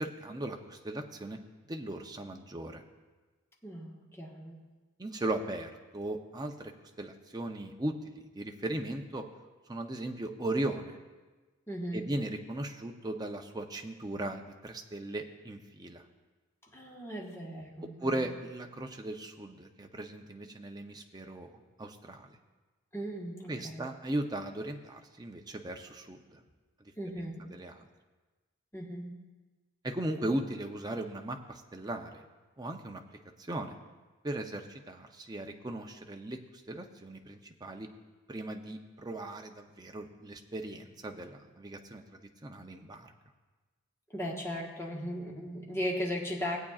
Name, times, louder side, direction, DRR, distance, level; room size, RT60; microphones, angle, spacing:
voice 1, 0.0-1.4 1.7-2.8 5.0-6.7 7.0-9.2 9.7-11.0 11.9-16.0 18.0-22.4 23.5-26.4 27.5-27.8 29.8-32.3 32.6-33.0 33.4-33.7 34.2-37.9 38.3-43.1, right 1 dB, 15° right, 3 dB, 0.6 m, -37 dB
voice 2, 3.6-4.6 11.7-12.1 16.7-18.2 22.9-23.9 27.0-27.5 28.7-29.2 44.1-46.6, equal, 10° left, -2 dB, 1.3 m, -37 dB
18.0 x 8.5 x 2.4 m, 1.3 s
head